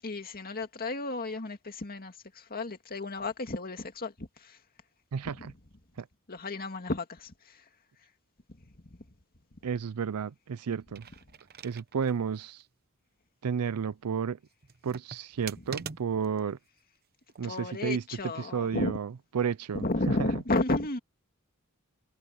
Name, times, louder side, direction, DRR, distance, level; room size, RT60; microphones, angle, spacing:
voice 1, 0.0-4.6 6.3-7.6 17.4-19.0 19.7-21.0, left 2 dB, 40° left, 2.2 m, -33 dB
voice 2, 5.1-5.5 6.0-6.1 9.6-11.1 11.6-12.6 13.4-14.4 14.8-16.6 17.4-20.3, right 6 dB, 80° right, 0.5 m, -32 dB
sound 1, 10.8-12.2 12.6-12.7 14.6-16.4 17.3-17.7, right 6 dB, 45° right, 0.9 m, -44 dB
head